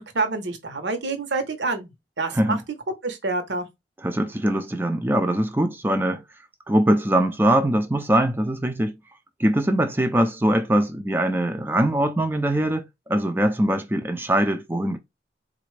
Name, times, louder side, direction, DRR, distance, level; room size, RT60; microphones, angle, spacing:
voice 1, 0.0-2.6 3.0-3.7, right 3 dB, 85° right, 1.0 m, -27 dB
voice 2, 4.0-6.2 6.7-8.9 9.4-15.0, right 1 dB, 10° right, 0.4 m, -22 dB
4.0 x 2.5 x 3.2 m
head